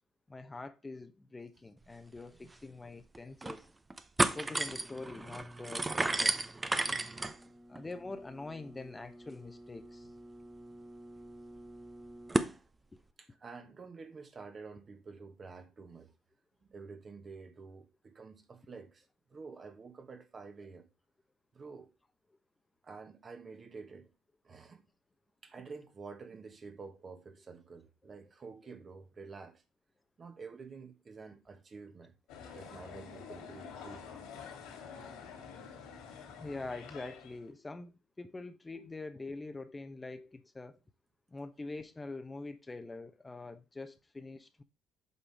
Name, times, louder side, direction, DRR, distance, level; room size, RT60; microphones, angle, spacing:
voice 1, 0.3-3.7 4.3-6.5 7.7-10.1 12.9-13.0 36.4-40.8 41.3-44.6, left 3 dB, 20° left, 1.0 m, -44 dB
sound 1, 2.2-2.3 2.5-2.6 3.1-3.6 3.9-12.5, right 2 dB, 20° right, 0.8 m, -35 dB
voice 2, 13.2-16.1 16.6-20.9 21.5-21.9 22.8-24.1 24.4-24.8 25.4-29.6 30.2-32.1 32.5-34.1 38.7-38.9, right 4 dB, 40° right, 1.5 m, -49 dB
sound 2, 32.3-37.5, left 6 dB, 70° left, 3.0 m, -48 dB
8.4 x 5.5 x 3.6 m
hypercardioid pair, 55°, 0 cm